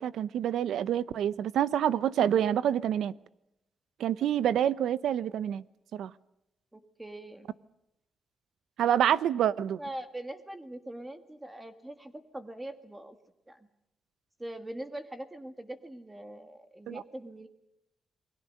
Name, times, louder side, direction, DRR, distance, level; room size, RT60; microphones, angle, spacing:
voice 1, 0.0-3.1 4.0-5.6 5.9-6.1 8.8-9.8 16.9-17.0, right 10 dB, 85° right, 18 dB, 0.8 m, -27 dB
voice 2, 6.7-7.5 9.8-13.2 13.5-13.6 14.4-17.5, right 1 dB, 10° right, 9 dB, 1.7 m, -42 dB
29.0 x 21.5 x 6.6 m, 0.86 s
cardioid pair, 125°, 0 cm